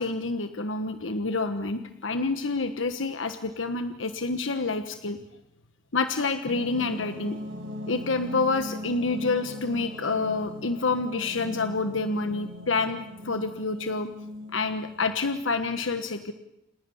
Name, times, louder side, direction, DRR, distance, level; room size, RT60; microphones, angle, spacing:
voice 1, 0.0-5.2 5.9-7.4 7.9-14.1 14.5-16.3, left 3 dB, 80° left, 9 dB, 1.3 m, -28 dB
sound 1, 6.5-15.2, left 1 dB, 85° right, 7.0 m, -40 dB
30.0 x 27.5 x 7.2 m, 0.90 s
head